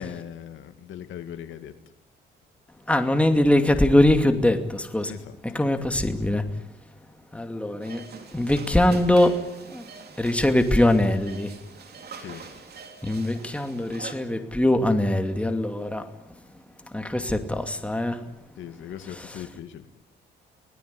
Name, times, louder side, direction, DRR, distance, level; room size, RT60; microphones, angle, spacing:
voice 1, 0.0-1.7 5.1-5.4 12.2-12.4 18.6-19.9, left 9 dB, 75° left, 2.1 m, -39 dB
voice 2, 2.9-5.1 5.4-6.4 7.3-8.0 8.3-9.4 9.7-9.9 10.2-11.5 13.0-16.1 16.9-18.2 19.1-19.4, left 1 dB, 5° left, 2.5 m, -22 dB
sound 1, 7.8-14.1, right 5 dB, 55° right, 3.7 m, -44 dB
25.0 x 18.5 x 9.7 m
cardioid pair, 90°, 20 cm